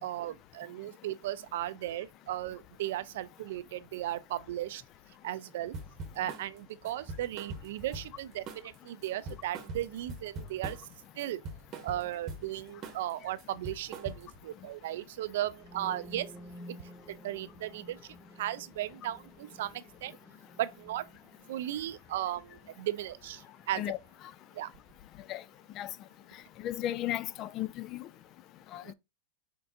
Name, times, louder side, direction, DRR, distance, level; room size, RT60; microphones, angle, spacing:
voice 1, 0.0-4.8 5.2-5.7 6.1-10.9 11.1-11.4 11.8-16.3 16.7-20.2 20.6-21.0 21.5-23.8 24.5-24.7 28.8-28.9, right 13 dB, 70° right, 0.4 m, -36 dB
sound 1, 5.7-6.5 6.9-8.2 8.5-8.8 9.0-10.9 11.2-12.5 12.8-13.1 13.4-14.4, right 3 dB, 40° right, 1.0 m, -42 dB
sound 2, 15.5-23.4, equal, 5° right, 0.6 m, -52 dB
voice 2, 26.6-28.1 28.7-28.8, left 13 dB, 40° left, 0.3 m, -34 dB
4.4 x 3.8 x 2.6 m
hypercardioid pair, 120°, 0 cm